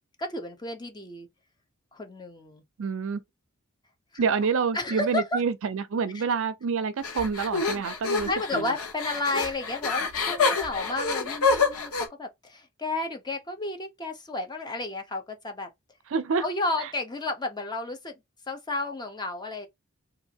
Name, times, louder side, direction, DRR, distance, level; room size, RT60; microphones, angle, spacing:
voice 1, 0.2-1.3 1.9-2.6 4.1-4.2 4.7-5.4 6.1-6.2 7.7-7.8 8.3-15.7 16.4-18.2 18.5-19.7, left 2 dB, 20° left, 0.8 m, -32 dB
voice 2, 2.8-3.2 4.2-8.7 16.1-16.4 16.8-16.9, right 5 dB, 65° right, 0.5 m, -27 dB
sound 1, 7.0-12.1, left 4 dB, 85° left, 1.0 m, -27 dB
3.5 x 2.6 x 2.8 m
head